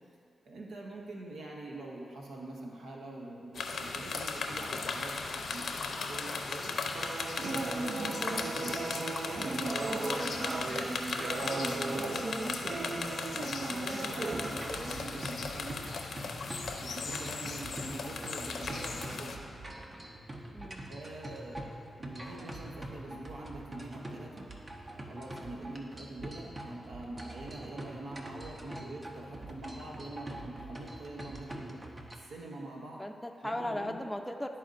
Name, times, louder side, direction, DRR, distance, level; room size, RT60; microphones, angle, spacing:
voice 1, 0.4-6.7 7.4-10.0 10.5-10.9 11.3-13.3 13.6-16.0 16.8-19.4 20.9-24.5 25.1-31.8 32.1-33.0 33.4-34.0, right 2 dB, 80° right, -2 dB, 0.9 m, -44 dB
sound 1, 3.5-19.4, left 4 dB, 75° left, 0.6 m, -37 dB
sound 2, 7.0-14.9, right 3 dB, 60° right, 0.5 m, -36 dB
sound 3, 14.3-32.2, right 1 dB, 35° right, 0.8 m, -44 dB
voice 2, 20.5-20.9 28.7-28.8 33.0-34.6, left 1 dB, 10° left, 4 dB, 0.5 m, -38 dB
12.0 x 4.2 x 2.5 m, 2.3 s
cardioid pair, 50°, 0 cm